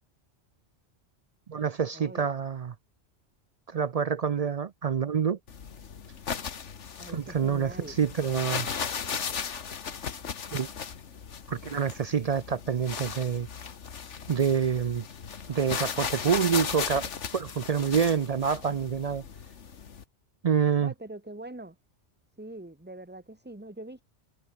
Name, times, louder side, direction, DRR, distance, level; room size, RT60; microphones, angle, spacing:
voice 1, 1.5-2.7 3.7-5.4 7.1-8.7 10.5-10.7 11.5-13.5 14.3-15.0 15.5-19.2 20.4-20.9, right 7 dB, 50° right, 0.4 m, -27 dB
sound 1, 5.5-20.0, left 6 dB, 85° left, 1.7 m, -37 dB
voice 2, 7.0-8.0 20.8-21.8 22.4-24.0, right 1 dB, 10° right, 1.2 m, -43 dB
omnidirectional pair, 1.2 m